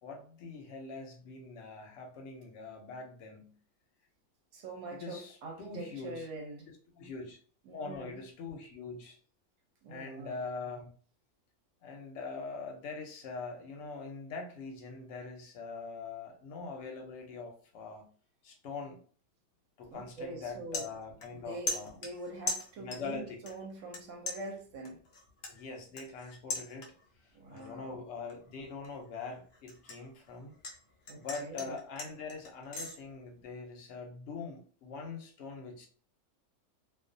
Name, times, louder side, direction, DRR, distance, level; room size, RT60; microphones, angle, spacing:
voice 1, 0.0-3.6 4.9-6.3 6.9-7.4 7.7-9.2 9.9-10.9 11.8-18.1 18.4-19.0 19.8-22.0 22.8-23.4 25.5-26.9 27.2-30.5 31.1-35.9, left 4 dB, 60° left, 3 dB, 0.8 m, -43 dB
voice 2, 4.5-6.7 7.7-8.1 9.8-10.4 19.9-20.9 21.4-25.0 27.3-28.0 31.1-31.8, right 2 dB, 65° right, 2 dB, 0.9 m, -44 dB
sound 1, 19.8-20.0 20.4-21.4 21.7-23.2 23.5-24.0 24.3-27.2 27.6-27.9 28.3-30.8 31.1-32.9, left 3 dB, 80° left, 0.4 m, -40 dB
2.3 x 2.3 x 2.6 m, 0.43 s
omnidirectional pair, 1.6 m